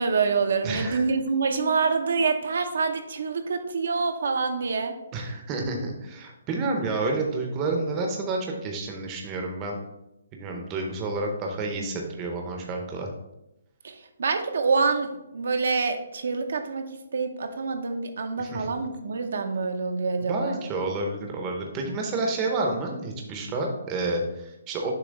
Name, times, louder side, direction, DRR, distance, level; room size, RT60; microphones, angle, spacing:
voice 1, 0.0-5.0 13.8-16.8 17.1-20.6, right 4 dB, 65° right, 6 dB, 0.7 m, -26 dB
voice 2, 0.6-1.1 5.1-9.8 10.3-13.1 18.4-18.7 20.2-24.9, right 2 dB, 15° right, 2 dB, 0.7 m, -29 dB
6.8 x 2.9 x 5.2 m, 0.90 s
hypercardioid pair, 170°, 0 cm